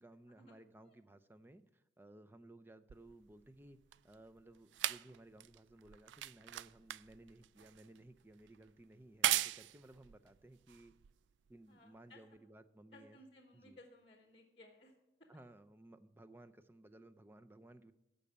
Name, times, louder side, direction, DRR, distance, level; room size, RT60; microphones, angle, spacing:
voice 1, 0.0-3.8 4.0-10.9 11.5-13.2 13.5-13.8 15.3-17.9, right 1 dB, 10° right, 10 dB, 0.4 m, -59 dB
sound 1, 2.9-11.5 12.4-12.5, right 13 dB, 80° right, 0.3 m, -40 dB
voice 2, 11.7-12.2 12.9-14.9 15.3-15.4, left 1 dB, 30° left, 2 dB, 1.2 m, -61 dB
13.5 x 5.3 x 8.5 m, 0.96 s
head